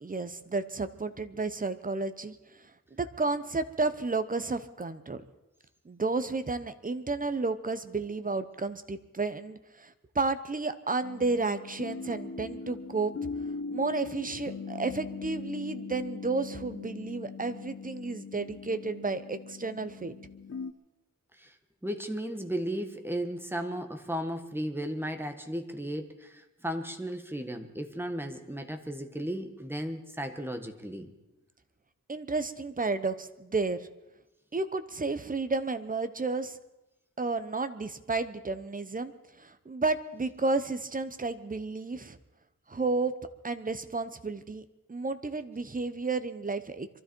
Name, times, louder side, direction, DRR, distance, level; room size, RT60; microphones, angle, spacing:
voice 1, 0.0-2.4 3.0-5.2 5.9-13.1 13.7-20.1 32.1-33.8 34.5-36.6 37.2-39.1 39.4-42.2 42.7-43.1 43.4-44.6 44.9-46.9, right 3 dB, 25° right, 11 dB, 0.9 m, -32 dB
sound 1, 11.0-20.7, left 4 dB, 45° left, 0.8 m, -40 dB
voice 2, 21.8-31.1, equal, 5° right, 6 dB, 1.4 m, -35 dB
23.5 x 13.0 x 4.5 m, 0.98 s
wide cardioid pair, 135°, 33 cm